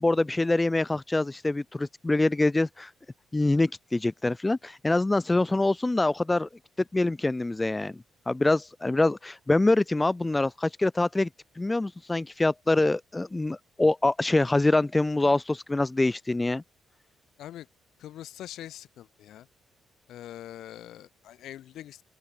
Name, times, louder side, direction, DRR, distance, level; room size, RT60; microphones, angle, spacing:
voice 1, 0.0-2.9 3.3-6.5 6.9-11.3 11.6-16.6, left 2 dB, 15° left, 1.0 m, -25 dB
voice 2, 18.0-19.5 20.1-22.0, left 12 dB, 80° left, 2.3 m, -43 dB
open air
cardioid pair, 90°, 0 cm